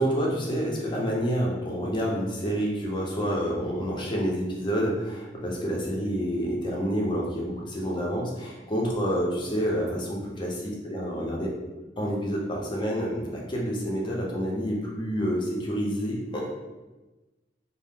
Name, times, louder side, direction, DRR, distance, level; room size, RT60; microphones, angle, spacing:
voice 1, 0.0-10.5 10.8-11.5 12.0-16.5, equal, 25° left, -3 dB, 0.6 m, -28 dB
2.7 x 2.0 x 3.4 m, 1.1 s
head